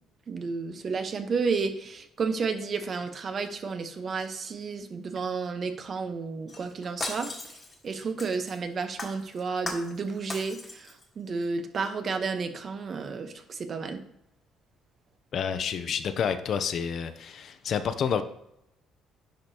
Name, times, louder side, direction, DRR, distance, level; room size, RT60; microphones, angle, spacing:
voice 1, 0.3-7.6 7.8-14.0, right 4 dB, 45° right, 8 dB, 1.0 m, -32 dB
Shatter, 6.5-8.6 9.0-10.0 10.3-11.0 11.4-11.5, left 2 dB, 25° left, 1.5 m, -38 dB
voice 2, 15.3-18.2, left 7 dB, 55° left, 11 dB, 0.6 m, -29 dB
10.5 x 5.0 x 2.9 m, 0.81 s
cardioid pair, 100°, 0 cm